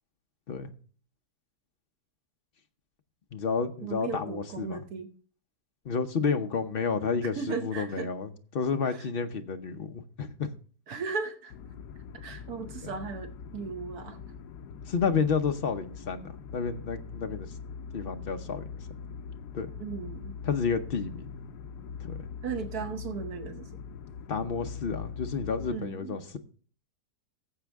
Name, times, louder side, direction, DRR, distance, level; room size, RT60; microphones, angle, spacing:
voice 1, 3.3-4.8 5.8-10.5 14.9-17.5 17.9-19.1 19.5-19.7 20.4-21.5 22.0-22.3 24.3-26.4, left 5 dB, 50° left, 0.7 m, -31 dB
voice 2, 3.8-5.1 7.4-8.1 10.9-11.5 12.2-14.2 19.8-20.3 22.4-23.7 25.7-26.2, right 5 dB, 70° right, 1.4 m, -36 dB
sound 1, 11.5-25.8, left 6 dB, 80° left, 1.2 m, -42 dB
14.5 x 7.4 x 3.5 m
omnidirectional pair, 1.8 m